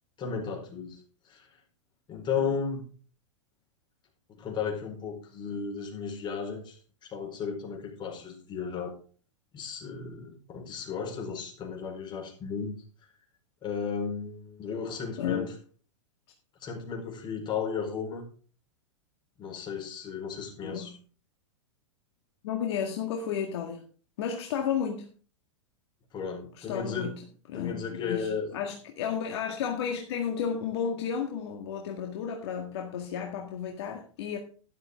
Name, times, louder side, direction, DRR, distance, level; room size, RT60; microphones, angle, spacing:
voice 1, 0.2-1.6 2.1-2.8 4.4-9.0 9.5-12.7 13.6-15.5 16.6-18.2 19.4-20.9 26.1-27.1 27.5-28.5, left 6 dB, 30° left, 4.5 m, -34 dB
voice 2, 20.6-21.0 22.4-23.8 24.2-25.1 26.6-27.2 27.5-34.4, left 7 dB, 55° left, 1.9 m, -32 dB
12.5 x 11.5 x 3.6 m
figure-of-eight pair, 100°, 16 cm